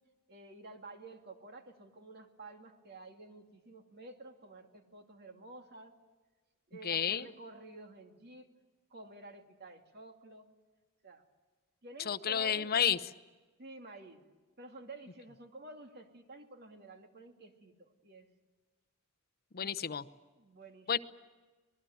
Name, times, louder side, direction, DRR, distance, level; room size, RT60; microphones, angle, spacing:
voice 1, 0.3-5.9 6.7-8.5 8.9-10.5 11.0-11.2 11.8-12.9 13.6-14.2 14.6-18.3 19.6-19.7 20.4-21.0, right 2 dB, 50° right, 4 dB, 2.4 m, -51 dB
voice 2, 6.8-7.3 12.1-13.0 19.5-20.0 20.9-21.0, left 8 dB, 45° left, 12 dB, 0.8 m, -30 dB
25.5 x 20.0 x 9.3 m, 1.3 s
head